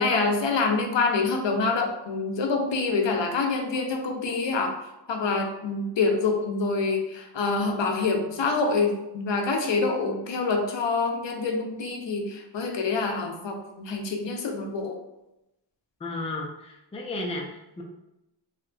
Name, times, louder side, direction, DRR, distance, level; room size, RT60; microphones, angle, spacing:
voice 1, 0.0-4.8 5.1-15.0, left 4 dB, 70° left, 2 dB, 0.5 m, -26 dB
voice 2, 16.0-17.8, left 2 dB, 15° left, 0 dB, 0.3 m, -33 dB
2.8 x 2.1 x 2.5 m, 0.92 s
wide cardioid pair, 80°, 46 cm